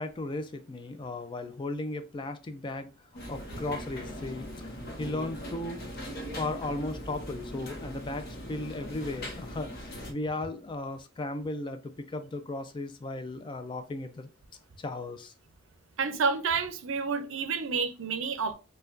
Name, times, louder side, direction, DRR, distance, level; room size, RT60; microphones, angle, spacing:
voice 1, 0.0-2.9 3.3-4.7 5.0-5.8 6.4-14.3 14.8-15.3, left 2 dB, 25° left, 0.3 m, -36 dB
sound 1, 3.1-10.1, equal, 50° left, 0.8 m, -40 dB
voice 2, 16.0-18.5, right 5 dB, 70° right, 0.5 m, -29 dB
4.4 x 2.2 x 2.5 m
head